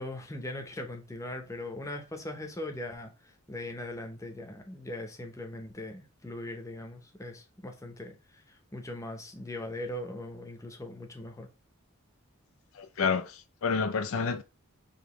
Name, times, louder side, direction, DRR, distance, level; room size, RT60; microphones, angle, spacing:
voice 1, 0.0-11.5, left 1 dB, 15° left, 0.9 m, -40 dB
voice 2, 12.7-14.4, left 5 dB, 70° left, 0.5 m, -29 dB
5.0 x 3.1 x 3.1 m
head